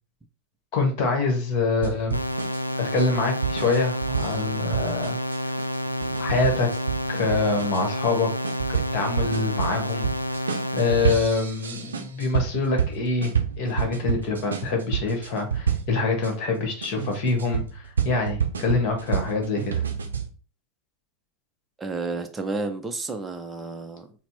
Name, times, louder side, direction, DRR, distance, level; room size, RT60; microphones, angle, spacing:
voice 1, 0.7-2.2 2.8-5.2 6.2-6.7 7.1-8.3 8.9-10.1 10.7-19.8, left 3 dB, 40° left, 1.3 m, -25 dB
sound 1, 1.8-16.3 16.8-20.3, right 7 dB, 70° right, 0.6 m, -29 dB
sound 2, 2.1-11.1, equal, 85° left, 0.3 m, -29 dB
voice 2, 21.8-24.1, right 3 dB, 15° right, 0.6 m, -31 dB
4.2 x 2.0 x 4.2 m
figure-of-eight pair, 90°, 0 cm